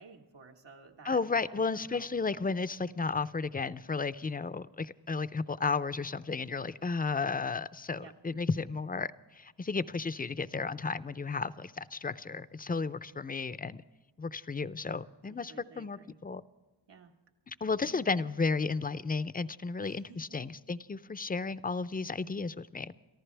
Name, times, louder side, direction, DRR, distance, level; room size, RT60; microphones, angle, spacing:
voice 1, 0.0-1.6 1.9-2.1 8.0-8.1 15.5-16.2 16.9-17.1 19.8-20.4, right 5 dB, 80° right, 2 dB, 1.8 m, -53 dB
voice 2, 1.0-13.8 14.2-16.4 17.5-22.9, left 4 dB, 20° left, 14 dB, 0.5 m, -33 dB
29.5 x 14.5 x 3.4 m, 1.2 s
wide cardioid pair, 75°, 42 cm